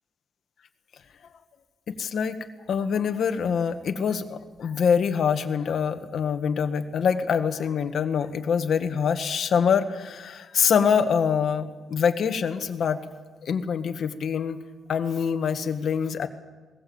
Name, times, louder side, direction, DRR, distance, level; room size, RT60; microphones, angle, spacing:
voice 1, 1.9-2.4 2.7-13.0 13.4-14.6 14.9-16.3, left 7 dB, 50° left, 8 dB, 1.4 m, -25 dB
21.0 x 18.5 x 7.9 m, 1.3 s
cardioid pair, 170°, 0 cm